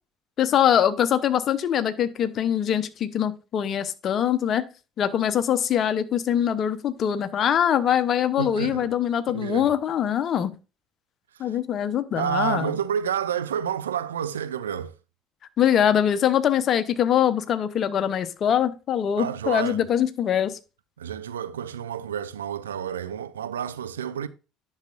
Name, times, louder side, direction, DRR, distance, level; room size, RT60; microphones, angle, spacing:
voice 1, 0.4-4.7 5.0-10.5 11.4-12.7 15.6-20.6, left 9 dB, 45° left, 0.8 m, -23 dB
voice 2, 8.4-8.9 9.3-9.7 12.2-14.9 19.2-19.8 21.0-24.3, right 8 dB, 85° right, 0.5 m, -29 dB
10.5 x 6.5 x 2.4 m
hypercardioid pair, 60°, 0 cm